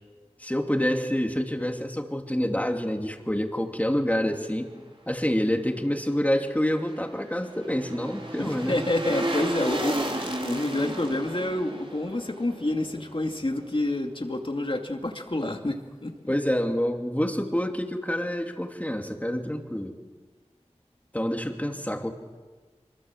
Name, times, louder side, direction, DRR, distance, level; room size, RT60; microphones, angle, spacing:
voice 1, 0.4-4.7 5.1-8.8 16.3-19.9 21.1-22.1, equal, 15° left, 3 dB, 2.8 m, -27 dB
sound 1, 6.4-13.6 14.0-14.1, right 1 dB, 50° right, 3.6 m, -34 dB
voice 2, 8.4-16.1, left 1 dB, 50° left, 4 dB, 2.5 m, -28 dB
25.5 x 23.5 x 7.4 m, 1.4 s
wide cardioid pair, 45°, 12 cm